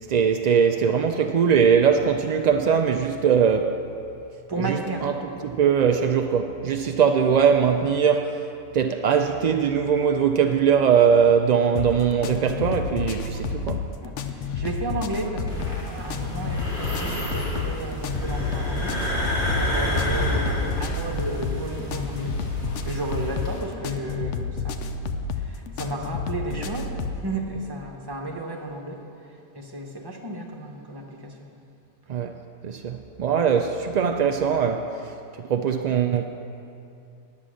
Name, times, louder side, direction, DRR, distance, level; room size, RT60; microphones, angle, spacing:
voice 1, 0.1-3.8 4.6-5.1 5.4-8.4 8.7-13.9 32.1-36.2, right 7 dB, 65° right, 5 dB, 0.4 m, -21 dB
voice 2, 4.5-5.5 14.0-19.0 19.5-22.3 22.8-24.8 25.4-29.0 29.5-31.3, right 2 dB, 20° right, 1 dB, 1.0 m, -33 dB
sound 1, 11.8-27.2, left 5 dB, 80° left, 1.0 m, -30 dB
sound 2, 15.5-23.6, equal, 60° left, 2.5 m, -29 dB
10.0 x 8.4 x 6.3 m, 2.6 s
omnidirectional pair, 1.2 m